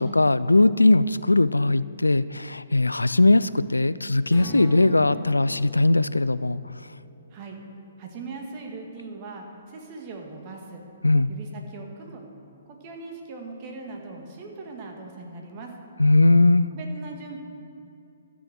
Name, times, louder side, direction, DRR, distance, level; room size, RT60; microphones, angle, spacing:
voice 1, 0.0-6.6 11.0-11.3 16.0-16.7, left 2 dB, 85° left, 16 dB, 0.3 m, -19 dB
Strum, 4.3-8.5, equal, 20° left, 2.7 m, -42 dB
voice 2, 8.0-10.8 11.3-12.2 12.7-15.7 16.7-17.4, right 3 dB, 35° right, 2 dB, 1.9 m, -40 dB
13.5 x 6.9 x 6.7 m, 2.6 s
figure-of-eight pair, 130°, 0 cm